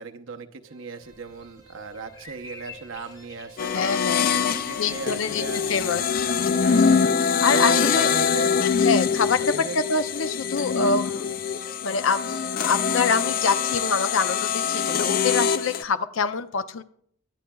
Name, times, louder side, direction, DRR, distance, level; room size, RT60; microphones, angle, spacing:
voice 1, 0.0-5.7 6.3-7.1 7.5-8.6 9.4-10.1 10.6-11.0, right 4 dB, 80° right, 5 dB, 0.8 m, -38 dB
sound 1, 0.6-14.3, right 2 dB, 30° right, 1.8 m, -50 dB
sound 2, 1.0-8.6, left 2 dB, 20° left, 0.9 m, -48 dB
sound 3, 3.6-15.8, left 6 dB, 45° left, 0.4 m, -24 dB
voice 2, 3.7-4.4 4.8-5.4 5.7-6.0 7.4-8.1 8.8-11.3 11.8-12.2 12.6-16.8, left 5 dB, 85° left, 11 dB, 0.6 m, -25 dB
23.5 x 8.5 x 2.3 m, 0.64 s
head